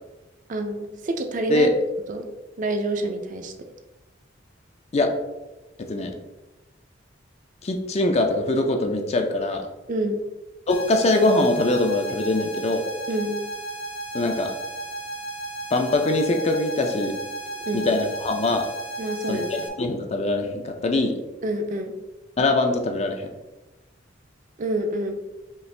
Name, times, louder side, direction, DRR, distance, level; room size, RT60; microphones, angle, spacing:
voice 1, 0.5-1.7 2.1-2.3 2.6-3.5 9.9-10.2 13.1-13.4 17.7-17.9 19.0-19.6 21.4-22.0 24.6-25.2, right 1 dB, 40° right, 6 dB, 0.4 m, -27 dB
voice 2, 5.8-6.1 7.6-9.7 10.7-12.8 14.1-14.5 15.7-17.1 17.7-18.7 19.3-21.2 22.4-23.3, left 2 dB, 35° left, 5 dB, 0.4 m, -22 dB
sound 1, 10.7-19.7, right 2 dB, 80° left, 0.7 m, -34 dB
5.4 x 2.4 x 3.2 m, 1.1 s
head